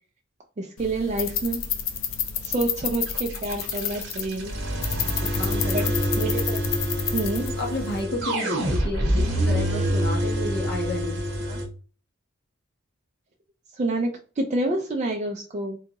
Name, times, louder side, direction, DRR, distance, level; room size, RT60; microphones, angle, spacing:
voice 1, 0.6-1.6 2.4-4.5 5.3-5.4 5.7-5.9 6.2-6.6 7.1-7.5 11.4-11.6 13.7-15.8, right 2 dB, 35° right, 1 dB, 0.4 m, -28 dB
sound 1, 0.8-8.0, left 8 dB, 75° left, 0.5 m, -31 dB
sound 2, 3.1-11.7, equal, 60° right, 1.0 m, -26 dB
voice 2, 5.3-5.9 7.4-11.2, left 1 dB, 55° left, 1 dB, 1.0 m, -31 dB
3.5 x 2.3 x 2.9 m, 0.38 s
head